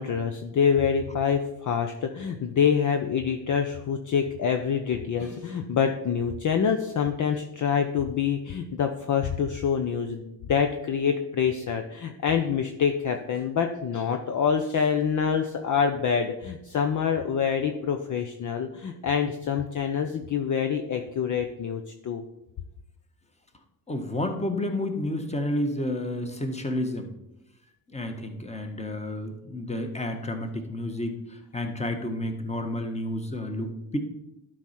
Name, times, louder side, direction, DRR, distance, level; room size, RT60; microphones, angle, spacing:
voice 1, 0.0-22.2, left 7 dB, 40° left, 5 dB, 0.8 m, -26 dB
voice 2, 23.9-27.1 27.9-34.0, left 1 dB, 15° left, 5 dB, 1.5 m, -30 dB
11.5 x 4.9 x 4.4 m, 0.87 s
hypercardioid pair, 55°, 48 cm